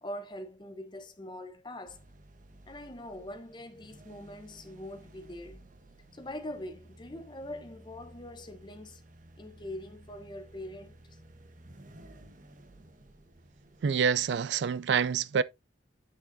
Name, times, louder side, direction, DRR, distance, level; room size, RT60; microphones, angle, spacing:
voice 1, 0.0-2.0 2.6-5.6 6.1-9.0 9.4-10.9, left 1 dB, 25° left, 0.8 m, -43 dB
sound 1, 1.9-14.4, right 1 dB, 45° right, 1.0 m, -55 dB
voice 2, 13.8-15.4, right 6 dB, 70° right, 0.4 m, -27 dB
8.2 x 6.3 x 2.6 m
head